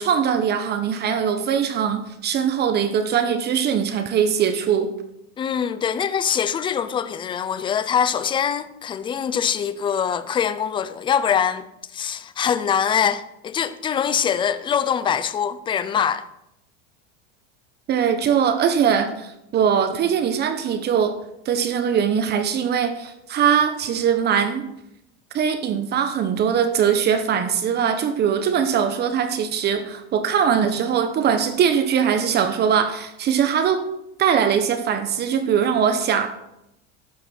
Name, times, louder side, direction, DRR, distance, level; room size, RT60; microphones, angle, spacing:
voice 1, 0.0-4.9 17.9-21.2 21.4-24.7 25.3-33.8 34.2-36.4, right 7 dB, 30° right, 1.0 m, -21 dB
voice 2, 5.4-11.7 11.9-16.2, left 8 dB, 15° left, 0.4 m, -23 dB
12.0 x 8.1 x 4.4 m
supercardioid pair, 145°, 33 cm